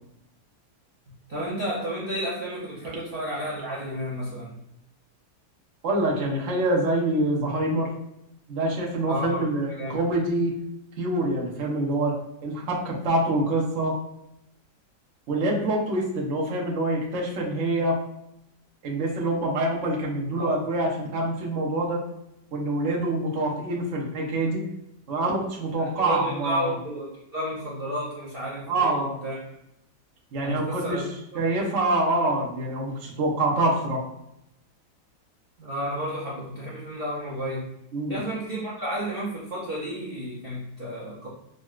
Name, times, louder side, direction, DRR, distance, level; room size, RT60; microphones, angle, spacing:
voice 1, 1.3-4.6 9.1-10.0 20.3-20.5 25.8-29.4 30.4-31.0 31.3-31.4 35.6-37.7 38.1-41.3, equal, 75° right, -6 dB, 0.5 m, -32 dB
voice 2, 5.8-7.9 8.5-10.5 11.0-12.1 12.4-13.9 15.3-18.0 18.8-22.0 22.5-24.7 25.1-26.8 28.7-29.2 30.3-31.0 31.3-34.0 37.9-38.2, right 1 dB, 60° right, -3 dB, 0.9 m, -25 dB
3.7 x 2.1 x 2.3 m, 0.82 s
omnidirectional pair, 1.8 m